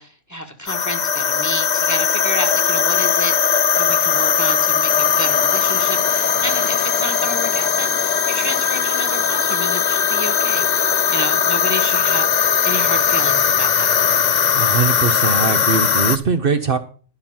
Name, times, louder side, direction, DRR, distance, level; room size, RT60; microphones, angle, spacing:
voice 1, 0.0-14.0, equal, 15° left, 6 dB, 1.5 m, -30 dB
sound 1, 0.7-16.2, left 7 dB, 45° left, 0.7 m, -18 dB
voice 2, 14.5-16.8, right 5 dB, 55° right, 8 dB, 1.0 m, -21 dB
11.5 x 5.7 x 7.3 m, 0.40 s
omnidirectional pair, 1.2 m